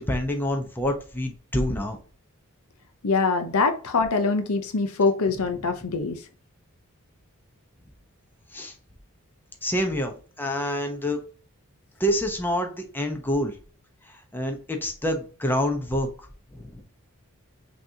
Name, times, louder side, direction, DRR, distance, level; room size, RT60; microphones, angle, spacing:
voice 1, 0.0-2.0 5.8-5.9 8.5-8.7 9.6-11.2 12.0-13.5 14.1-16.1 16.5-16.8, equal, 10° left, 0.8 m, -27 dB
voice 2, 3.0-6.2, left 4 dB, 75° left, 0.7 m, -24 dB
5.8 x 3.0 x 2.7 m
head